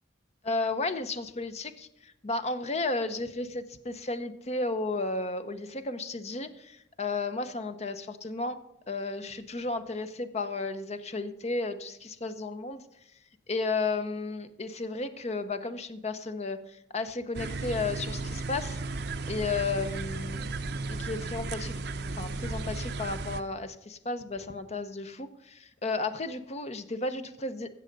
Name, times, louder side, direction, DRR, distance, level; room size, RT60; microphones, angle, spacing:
voice 1, 0.4-8.6 8.9-12.8 13.5-18.8 19.3-21.8 22.2-27.7, left 3 dB, 35° left, 10 dB, 0.8 m, -33 dB
sound 1, 17.3-23.4, right 3 dB, 60° right, 0.7 m, -35 dB
16.0 x 6.4 x 5.3 m, 0.84 s
head